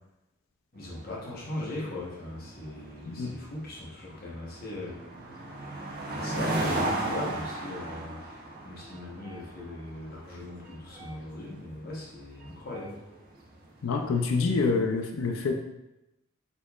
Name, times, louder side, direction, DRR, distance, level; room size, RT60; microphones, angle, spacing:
voice 1, 0.7-4.9 6.1-8.2 8.6-12.9, left 1 dB, 45° left, -4 dB, 0.9 m, -39 dB
sound 1, 0.8-14.3, right 1 dB, 45° right, 0.6 m, -36 dB
voice 2, 13.8-15.5, left 4 dB, 85° left, 3 dB, 0.4 m, -27 dB
4.2 x 2.9 x 2.3 m, 0.91 s
head